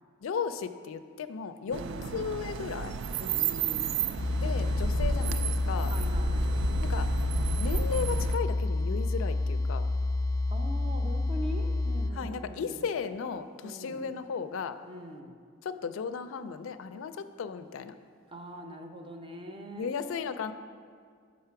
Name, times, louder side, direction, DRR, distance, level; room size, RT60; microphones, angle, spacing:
voice 1, 0.2-1.8 2.1-3.0 4.4-5.9 6.8-7.1 7.6-9.9 12.2-14.8 15.6-18.0 19.8-20.5, left 6 dB, 85° left, 11 dB, 0.4 m, -35 dB
voice 2, 1.7-2.1 3.2-4.0 5.9-6.6 10.5-12.9 13.6-14.1 14.8-15.4 18.3-19.9, right 1 dB, 25° right, 3 dB, 0.6 m, -42 dB
sound 1, 1.7-8.4, right 5 dB, 70° right, 0.3 m, -32 dB
sound 2, 4.1-12.1, left 2 dB, 15° left, 0.4 m, -29 dB
6.6 x 5.2 x 5.7 m, 2.1 s
head